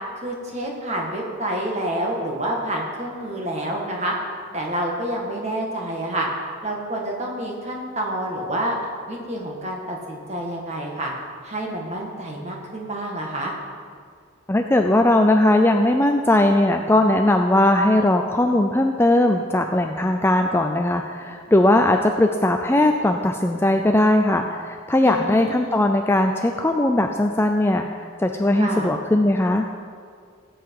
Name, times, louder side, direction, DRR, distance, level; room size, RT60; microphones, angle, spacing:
voice 1, 0.2-4.1 4.5-6.3 6.6-8.8 9.1-11.1 11.4-13.5 25.0-25.8 28.5-28.9, right 1 dB, 30° right, -1 dB, 1.9 m, -28 dB
voice 2, 14.5-29.7, left 1 dB, 10° left, 4 dB, 0.4 m, -19 dB
17.0 x 8.0 x 4.8 m, 2.1 s
head